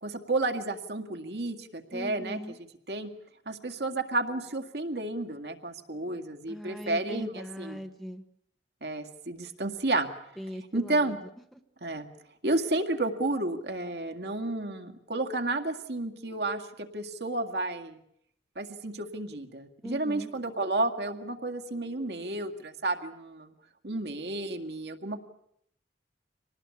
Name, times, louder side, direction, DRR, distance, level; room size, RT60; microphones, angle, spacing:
voice 1, 0.0-2.4 2.9-3.1 3.5-7.8 8.8-10.1 10.7-11.2 11.8-12.1 12.4-18.0 18.6-23.5 23.8-25.2, right 2 dB, 70° right, 4 dB, 2.0 m, -31 dB
voice 2, 1.9-2.6 6.5-8.2 10.4-11.2 11.5-11.6 19.8-20.3, equal, ahead, 6 dB, 1.2 m, -40 dB
25.0 x 19.0 x 8.4 m, 0.70 s
head